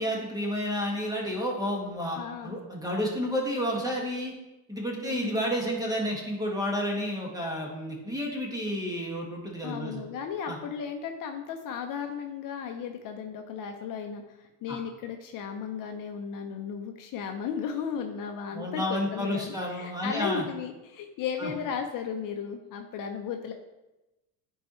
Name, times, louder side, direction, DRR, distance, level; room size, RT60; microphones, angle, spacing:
voice 1, 0.0-4.3 4.7-10.0 10.5-10.6 14.7-14.8 18.5-20.4 21.4-21.5, equal, 10° right, -1 dB, 1.8 m, -31 dB
voice 2, 2.1-2.6 5.0-5.4 9.6-23.5, left 7 dB, 45° left, 4 dB, 0.8 m, -35 dB
10.0 x 4.6 x 3.1 m, 1.0 s
supercardioid pair, 105°, 44 cm